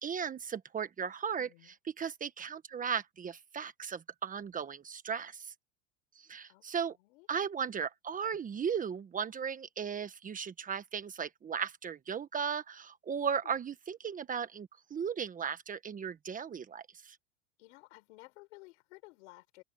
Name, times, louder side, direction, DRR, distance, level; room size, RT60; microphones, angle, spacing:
voice 1, 0.0-5.5 6.1-7.0 7.3-17.2, right 7 dB, 20° right, 1.4 m, -36 dB
voice 2, 1.4-1.7 6.5-7.3 13.4-13.6 17.6-19.6, left 23 dB, 70° left, 6.5 m, -55 dB
supercardioid pair, 125°, 36 cm